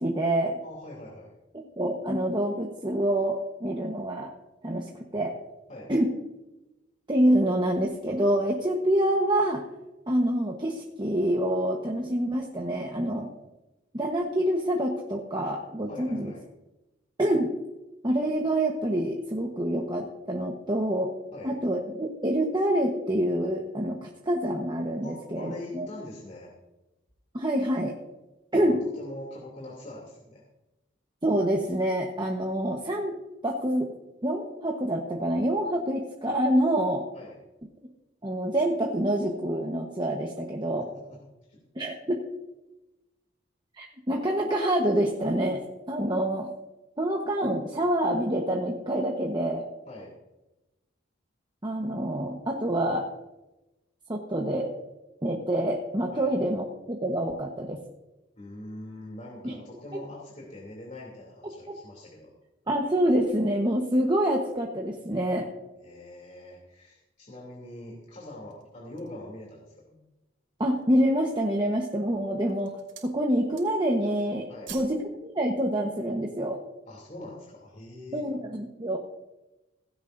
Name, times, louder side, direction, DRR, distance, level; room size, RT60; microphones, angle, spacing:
voice 1, 0.0-0.6 1.5-4.3 4.6-5.3 5.9-6.1 7.1-9.6 10.1-13.3 13.9-16.3 17.2-17.5 18.0-21.1 21.4-25.9 27.3-27.9 28.5-28.8 31.2-33.9 34.2-37.1 38.2-40.9 41.7-42.2 43.7-46.5 47.0-49.6 51.6-53.1 54.1-54.7 55.2-57.8 59.4-59.5 61.7-61.8 62.7-65.4 70.6-76.6 78.1-79.0, right 1 dB, 25° right, 0 dB, 1.2 m, -26 dB
voice 2, 0.6-1.3 5.7-5.9 15.9-16.4 21.3-21.5 25.0-26.5 28.5-30.4 37.1-37.4 41.1-41.2 41.5-41.6 49.9-50.1 56.1-56.3 58.4-62.3 65.8-70.0 74.5-74.7 76.8-78.2, left 1 dB, 40° left, -4 dB, 3.1 m, -43 dB
sound 1, 68.3-69.3 69.9-70.0 70.4-71.0 71.7-72.1 72.4-73.2 73.4-74.0 74.2-75.0 75.3-75.5, right 9 dB, 65° right, 3.0 m, -48 dB
17.0 x 16.0 x 2.7 m, 1.0 s
head